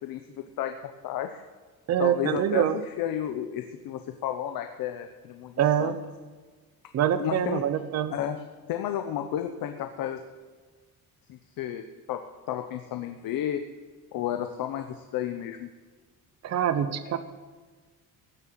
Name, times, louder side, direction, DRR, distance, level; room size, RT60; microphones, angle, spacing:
voice 1, 0.0-0.8 1.0-1.4 2.0-5.5 5.8-6.0 7.2-7.6 8.1-8.4 8.7-10.2 11.3-12.2 12.5-13.6 14.1-15.7, left 10 dB, 65° left, 6 dB, 0.9 m, -32 dB
voice 2, 1.9-2.7 5.6-5.9 6.9-8.1 16.4-17.2, right 9 dB, 45° right, 11 dB, 0.9 m, -25 dB
16.0 x 7.8 x 7.5 m, 1.4 s
cardioid pair, 175°, 36 cm